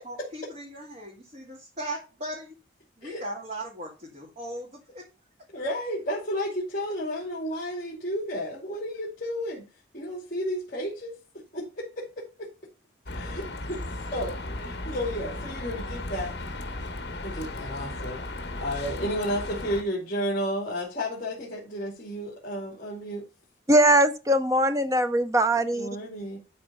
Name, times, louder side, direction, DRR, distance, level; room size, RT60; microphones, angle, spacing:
voice 1, 0.0-2.5 3.0-5.0, right 1 dB, 35° right, 2.5 m, -38 dB
voice 2, 5.5-9.6 9.9-11.1 11.5-12.0 12.4-12.5 13.1-13.8 14.1-16.3 17.2-18.2 18.6-23.2 25.6-26.4, equal, 40° left, 2.9 m, -32 dB
sound 1, 13.1-19.8, left 2 dB, 55° left, 1.4 m, -35 dB
voice 3, 23.7-25.9, right 1 dB, 15° right, 0.7 m, -21 dB
12.0 x 4.3 x 5.5 m
head